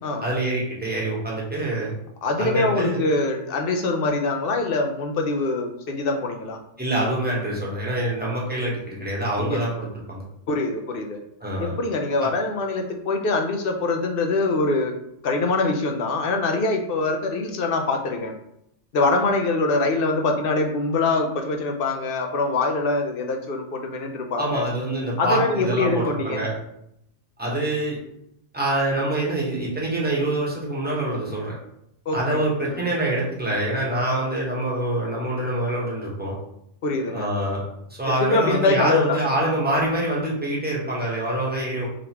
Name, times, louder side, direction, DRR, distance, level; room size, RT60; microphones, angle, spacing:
voice 1, 0.2-1.9 2.4-3.0 6.8-10.2 11.4-11.7 12.2-12.3 24.4-26.5 27.4-28.0 28.5-31.6 32.1-36.3 37.1-37.6 38.0-41.9, right 1 dB, 10° right, -5 dB, 1.0 m, -25 dB
voice 2, 2.2-6.6 9.5-9.9 10.5-11.2 11.6-14.9 15.2-18.3 18.9-24.7 25.2-26.4 32.1-32.8 36.8-37.3 38.1-39.2, left 3 dB, 60° left, 4 dB, 0.7 m, -24 dB
3.7 x 3.4 x 2.9 m, 0.77 s
omnidirectional pair, 1.2 m